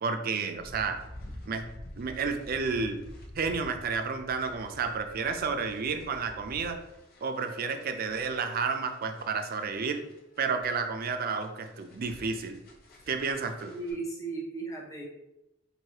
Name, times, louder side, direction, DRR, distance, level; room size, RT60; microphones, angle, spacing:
voice 1, 0.0-1.0 1.5-1.6 2.0-3.0 3.4-6.8 7.2-10.0 10.4-12.6 13.1-13.7, right 5 dB, 50° right, 7 dB, 0.4 m, -31 dB
sound 1, 0.5-13.9, left 1 dB, 50° left, 0.7 m, -49 dB
voice 2, 13.6-15.0, right 3 dB, 15° left, -2 dB, 0.8 m, -36 dB
4.7 x 2.6 x 2.8 m, 0.93 s
head